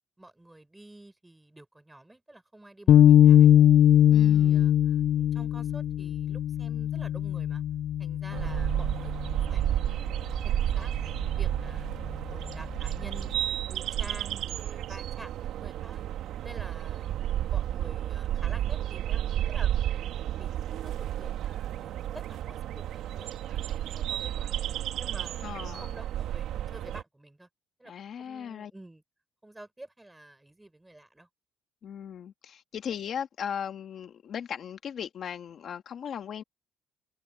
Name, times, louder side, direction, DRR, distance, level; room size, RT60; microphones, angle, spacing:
voice 1, 0.2-3.5 4.2-7.6 8.0-11.9 12.3-16.0 16.4-17.2 17.5-19.8 20.3-24.6 25.0-27.5 27.8-27.9 28.2-29.0 29.4-31.3, right 1 dB, 10° right, 6.4 m, -49 dB
sound 1, 2.9-9.3, left 11 dB, 65° left, 0.4 m, -21 dB
voice 2, 4.1-4.7 25.4-25.9 27.8-28.7 31.8-36.4, left 8 dB, 50° left, 1.6 m, -37 dB
sound 2, 8.3-27.0, right 12 dB, 70° right, 2.4 m, -31 dB
cardioid pair, 130°, 0 cm